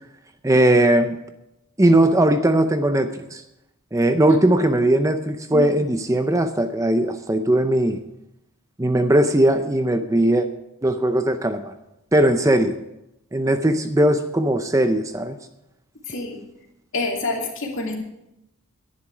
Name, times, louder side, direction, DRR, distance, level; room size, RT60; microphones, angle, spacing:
voice 1, 0.4-1.2 1.8-3.4 3.9-8.0 8.8-10.5 10.8-11.7 12.1-12.7 13.3-15.4, right 1 dB, 15° right, 8 dB, 0.5 m, -19 dB
voice 2, 16.1-16.4 16.9-17.9, left 2 dB, 60° left, 0 dB, 2.8 m, -27 dB
11.0 x 10.5 x 6.0 m, 0.88 s
head